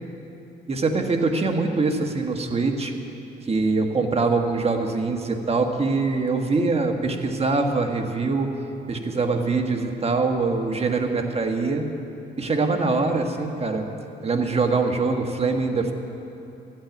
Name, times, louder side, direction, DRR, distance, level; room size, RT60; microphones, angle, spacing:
voice 1, 0.7-2.9 3.4-8.5 8.9-11.9 12.4-13.9 14.2-15.9, right 3 dB, 30° right, 4 dB, 1.5 m, -23 dB
13.0 x 9.0 x 9.1 m, 2.9 s
cardioid pair, 90°, 20 cm